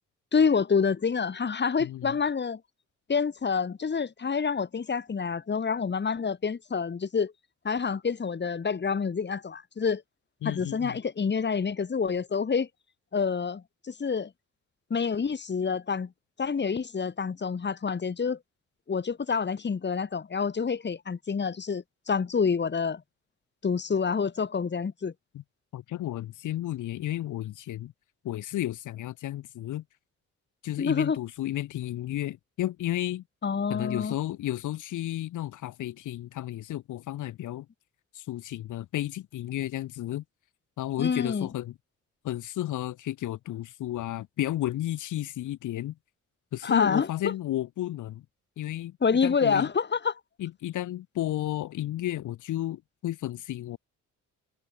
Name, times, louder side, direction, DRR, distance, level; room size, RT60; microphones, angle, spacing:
voice 1, 0.3-2.6 3.1-7.3 7.6-10.0 10.4-12.7 13.1-14.3 14.9-16.1 16.4-18.4 18.9-23.0 23.6-25.1 30.8-31.2 33.4-34.1 41.0-41.5 46.6-47.3 49.0-50.1, left 5 dB, 35° left, 3.8 m, -27 dB
voice 2, 1.8-2.2 10.4-11.0 25.3-25.4 25.7-27.9 28.2-29.8 30.6-33.2 33.7-37.7 38.1-40.2 40.8-41.7 42.2-45.9 46.5-48.2 48.6-49.0 49.2-49.7 50.4-53.8, left 14 dB, 80° left, 3.1 m, -32 dB
cardioid pair, 90°, 30 cm